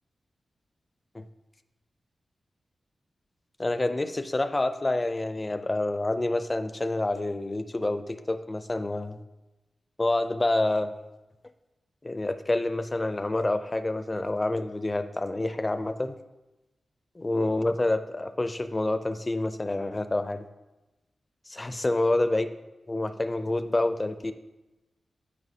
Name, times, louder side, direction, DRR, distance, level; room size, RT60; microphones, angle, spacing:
voice 1, 3.6-9.2 10.0-10.9 12.0-16.1 17.2-20.4 21.6-22.5 22.9-24.3, left 2 dB, 25° left, 10 dB, 0.4 m, -27 dB
11.5 x 4.6 x 2.8 m, 1.0 s
cardioid pair, 70°, 0 cm